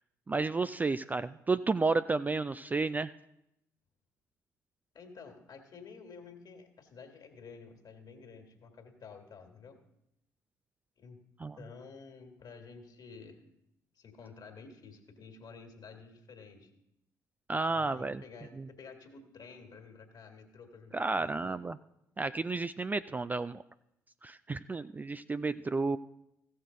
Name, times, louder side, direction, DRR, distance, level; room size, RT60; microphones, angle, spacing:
voice 1, 0.3-3.1 11.4-11.6 17.5-18.2 18.6-18.7 20.9-21.8 22.2-23.6 24.2-26.0, right 3 dB, 20° right, 13 dB, 0.3 m, -31 dB
voice 2, 4.9-9.8 11.0-11.2 11.6-13.4 13.9-16.7 17.5-21.6, left 5 dB, 45° left, 4 dB, 1.9 m, -51 dB
15.5 x 6.5 x 3.9 m, 0.82 s
figure-of-eight pair, 45°, 9 cm